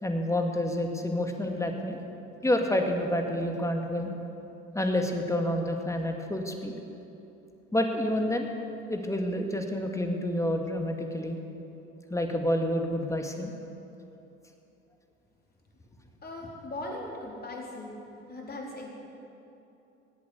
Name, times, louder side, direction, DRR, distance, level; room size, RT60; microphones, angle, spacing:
voice 1, 0.0-2.0 2.4-4.1 4.7-6.7 7.7-8.5 8.9-11.4 12.1-13.5, left 1 dB, 10° left, 3 dB, 2.2 m, -28 dB
voice 2, 16.2-18.0 18.3-18.9, left 2 dB, 25° left, -2 dB, 4.3 m, -39 dB
19.5 x 8.4 x 8.0 m, 2.9 s
hypercardioid pair, 70°, 35 cm